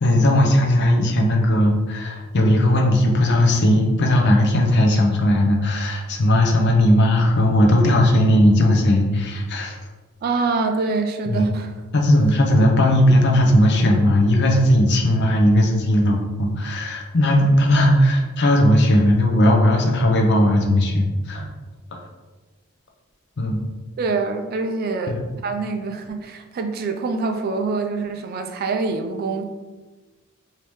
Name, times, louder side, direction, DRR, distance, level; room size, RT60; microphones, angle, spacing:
voice 1, 0.0-9.8 11.3-11.5 11.9-21.5 21.9-22.0 23.4-23.6 25.1-25.2, left 1 dB, 50° left, 1 dB, 0.5 m, -17 dB
voice 2, 10.2-11.7 24.0-25.2 25.4-29.4, right 4 dB, 45° right, 5 dB, 0.3 m, -25 dB
3.3 x 2.7 x 3.0 m, 1.3 s
head